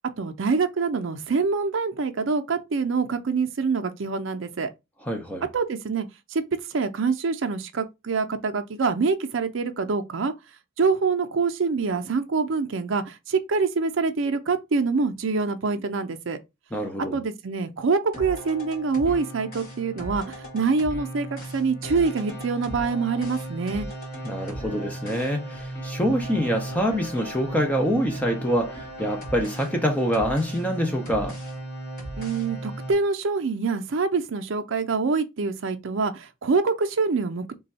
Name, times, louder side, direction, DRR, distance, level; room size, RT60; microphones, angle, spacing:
voice 1, 0.2-4.7 5.5-6.1 6.3-6.4 6.7-10.3 10.8-16.4 17.1-23.9 32.2-37.5, right 4 dB, 65° right, 0.5 m, -25 dB
voice 2, 5.0-5.5 16.7-17.2 24.2-31.4, equal, 5° left, 0.5 m, -25 dB
sound 1, 18.1-32.9, right 1 dB, 50° left, 1.7 m, -36 dB
3.3 x 2.3 x 4.0 m
head